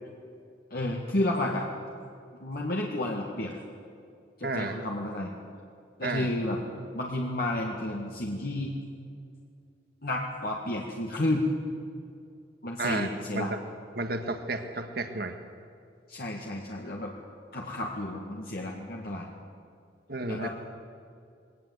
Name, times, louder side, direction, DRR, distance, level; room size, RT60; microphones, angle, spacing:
voice 1, 0.7-1.7 2.4-3.6 4.4-5.3 6.0-6.6 6.9-8.7 10.0-11.5 12.6-13.5 16.1-17.1 17.5-19.3 20.3-20.5, left 1 dB, 55° left, -1 dB, 1.9 m, -31 dB
voice 2, 4.4-4.8 6.0-6.3 12.8-13.1 13.3-13.5 14.0-15.4 20.1-20.5, right 2 dB, 55° right, 7 dB, 1.7 m, -32 dB
21.0 x 18.0 x 8.2 m, 2.4 s
head